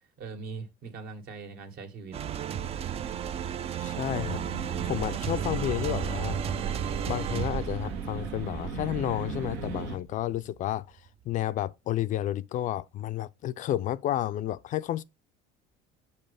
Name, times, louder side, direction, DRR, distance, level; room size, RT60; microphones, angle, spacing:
voice 1, 0.2-2.2, right 4 dB, 60° right, 2.0 m, -41 dB
sound 1, 2.1-10.7, right 9 dB, 35° right, 0.4 m, -34 dB
voice 2, 3.8-4.4 4.8-6.4 7.1-10.9 11.3-15.0, left 13 dB, 50° left, 0.4 m, -31 dB
sound 2, 4.0-10.0, right 4 dB, 85° right, 1.7 m, -37 dB
6.6 x 5.5 x 3.3 m
supercardioid pair, 105°, 17 cm